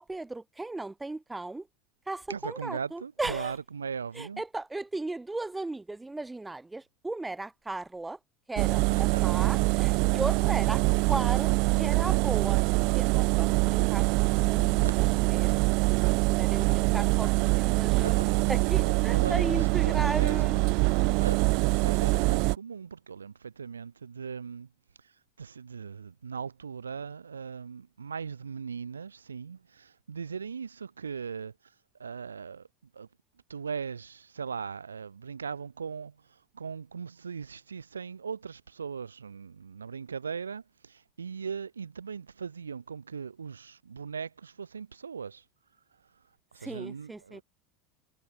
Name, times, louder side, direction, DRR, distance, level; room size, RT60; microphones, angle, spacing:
voice 1, 0.0-1.7 2.1-3.6 4.1-8.2 8.5-11.5 11.8-12.6 12.9-14.8 15.3-15.6 16.0-18.2 18.5-20.6 46.6-47.4, right 2 dB, 10° right, 3.6 m, -36 dB
voice 2, 2.3-4.4 8.7-9.2 14.8-14.9 17.9-20.7 21.2-24.7 25.0-25.1 25.4-31.5 32.0-32.7 32.9-33.1 33.5-45.4 46.5-47.4, right 6 dB, 80° right, 6.7 m, -39 dB
Engine, 8.6-22.5, right 29 dB, 55° right, 0.9 m, -24 dB
figure-of-eight pair, 75°, 0 cm